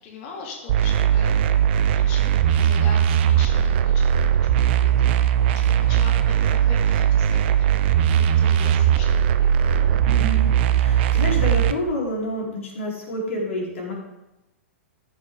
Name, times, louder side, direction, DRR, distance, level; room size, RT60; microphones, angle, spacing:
voice 1, 0.0-4.1 4.4-10.2, left 4 dB, 45° left, 0 dB, 2.5 m, -41 dB
sound 1, 0.7-11.7, right 9 dB, 55° right, 0.7 m, -19 dB
voice 2, 10.0-13.9, equal, 70° left, -3 dB, 4.3 m, -28 dB
14.0 x 7.6 x 3.9 m, 0.95 s
hypercardioid pair, 110°, 7 cm